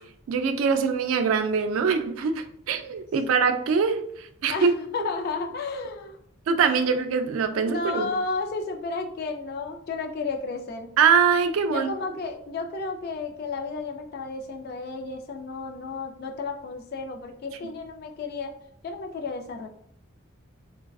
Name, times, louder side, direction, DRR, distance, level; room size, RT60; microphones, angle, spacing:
voice 1, 0.3-4.7 6.5-8.1 11.0-11.9, right 6 dB, 75° right, 7 dB, 0.3 m, -23 dB
voice 2, 4.5-6.2 6.7-6.9 7.5-10.9 11.7-18.5 18.8-19.7, left 3 dB, 45° left, 4 dB, 0.3 m, -32 dB
3.2 x 2.3 x 2.3 m, 0.70 s
head